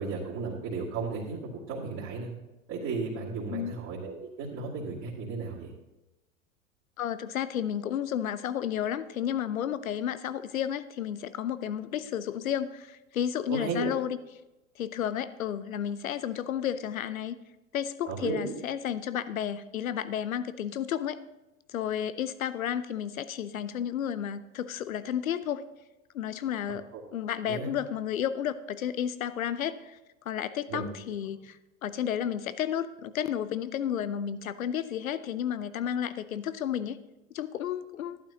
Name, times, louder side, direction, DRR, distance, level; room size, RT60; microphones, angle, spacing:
voice 1, 0.0-2.3 2.7-5.7 13.5-13.9 18.1-18.5 26.9-27.0 27.5-27.7 30.7-30.8, right 4 dB, 40° right, -8 dB, 2.6 m, -34 dB
voice 2, 7.0-14.2 14.8-17.4 17.7-21.2 21.7-25.7 26.1-26.8 27.1-30.0 30.3-37.0 37.3-38.2, left 9 dB, 80° left, 14 dB, 0.7 m, -32 dB
12.0 x 11.0 x 2.9 m, 1.0 s
hypercardioid pair, 90°, 40 cm